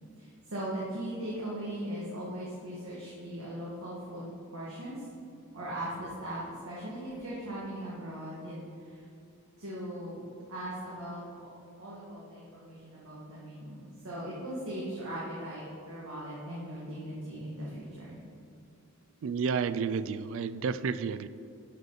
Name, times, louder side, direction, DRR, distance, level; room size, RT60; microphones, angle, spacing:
voice 1, 0.2-5.0 5.5-8.5 8.9-9.0 9.6-11.5 11.8-18.2, right 1 dB, 80° right, -7 dB, 1.8 m, -39 dB
voice 2, 19.2-21.3, right 5 dB, 60° right, 14 dB, 0.3 m, -31 dB
11.0 x 6.6 x 4.0 m, 2.5 s
head